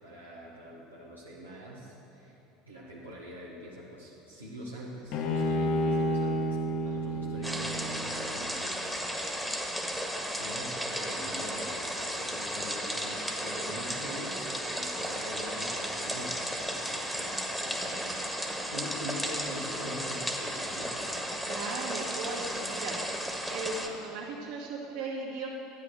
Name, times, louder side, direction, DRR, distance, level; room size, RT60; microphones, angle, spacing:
voice 1, 0.0-2.4 2.7-8.9 10.4-20.9, equal, 90° right, -7 dB, 1.7 m, -44 dB
Bowed string instrument, 5.1-8.4, equal, 50° left, 1.2 m, -30 dB
sound 1, 7.4-23.9, equal, ahead, 1.6 m, -34 dB
voice 2, 9.3-9.6 21.4-23.0 23.5-25.5, right 3 dB, 60° right, -3 dB, 2.4 m, -37 dB
13.5 x 9.7 x 6.7 m, 3.0 s
figure-of-eight pair, 70°, 0 cm